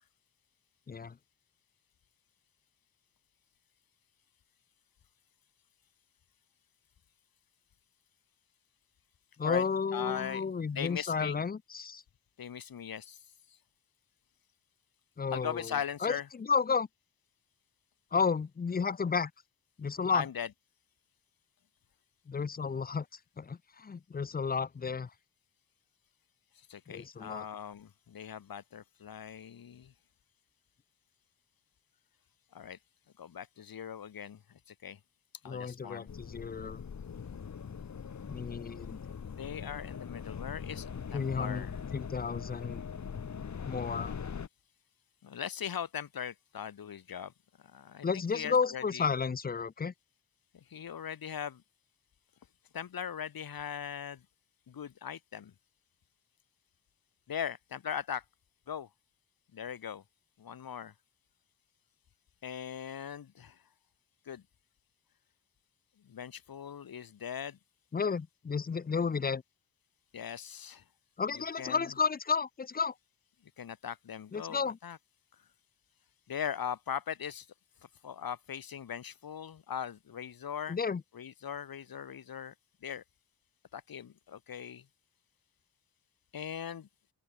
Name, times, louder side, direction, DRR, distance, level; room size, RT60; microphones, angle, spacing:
voice 1, 9.4-12.0 15.2-16.9 18.1-19.3 19.8-20.3 22.3-23.1 23.4-25.1 26.9-27.5 35.5-36.8 38.3-39.0 41.1-42.8 43.6-44.1 48.0-49.9 67.9-69.4 71.2-72.9 74.3-74.8 80.7-81.0, left 5 dB, 25° left, 0.6 m, -32 dB
voice 2, 9.9-10.4 10.7-11.4 12.4-13.2 15.3-16.3 20.1-20.5 26.7-29.9 32.5-32.8 33.2-35.0 35.4-36.1 39.4-41.7 45.2-47.3 47.7-49.0 50.5-51.6 52.7-54.2 54.7-55.5 57.3-58.2 58.7-58.9 59.5-60.0 60.4-60.9 62.4-63.6 64.3-64.4 66.0-67.6 70.1-70.8 71.6-71.9 73.6-75.0 76.3-77.5 78.0-80.8 81.1-82.5 82.8-83.0 83.7-84.8 86.3-86.9, left 8 dB, 75° left, 3.7 m, -40 dB
sound 1, 36.1-44.5, left 6 dB, 50° left, 2.5 m, -41 dB
open air
wide cardioid pair, 120°, 36 cm